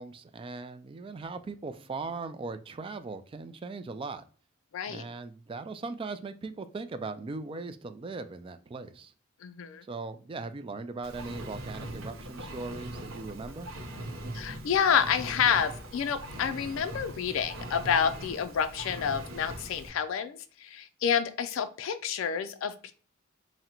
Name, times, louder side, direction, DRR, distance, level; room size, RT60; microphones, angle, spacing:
voice 1, 0.0-4.2 4.9-9.1 9.9-13.7, right 3 dB, 25° right, 10 dB, 0.3 m, -39 dB
voice 2, 4.7-5.0 9.4-9.9 14.3-22.9, left 7 dB, 70° left, 9 dB, 0.4 m, -29 dB
Engine, 11.0-19.9, right 1 dB, 85° right, 0.8 m, -41 dB
3.7 x 2.1 x 4.3 m, 0.42 s
head